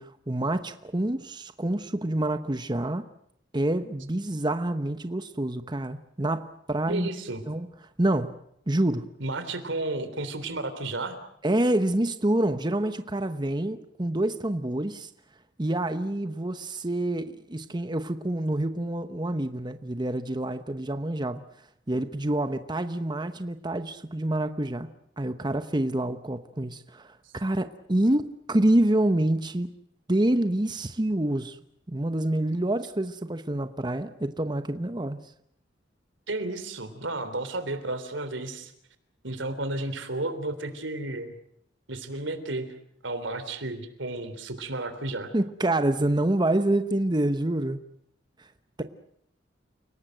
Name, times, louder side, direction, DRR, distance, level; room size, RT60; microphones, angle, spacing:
voice 1, 0.0-3.0 3.5-7.1 7.5-7.7 8.0-8.4 8.7-9.1 11.4-15.1 15.6-21.4 21.9-24.9 25.2-29.7 30.1-31.6 31.9-35.2 45.3-47.8 48.4-48.5, right 1 dB, 25° right, 10 dB, 1.0 m, -27 dB
voice 2, 6.9-7.4 9.2-11.2 36.3-38.7 39.2-41.3 41.9-42.7 43.0-45.3, right 2 dB, 90° right, 10 dB, 3.5 m, -32 dB
30.0 x 18.5 x 7.8 m, 0.72 s
head